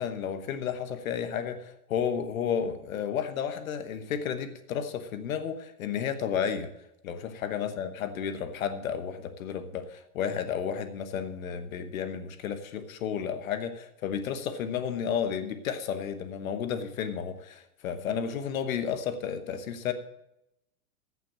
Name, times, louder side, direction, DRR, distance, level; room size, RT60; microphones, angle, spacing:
voice 1, 0.0-6.7 7.0-19.9, left 8 dB, 65° left, 10 dB, 1.1 m, -32 dB
14.5 x 6.0 x 7.3 m, 0.86 s
supercardioid pair, 180°, 44 cm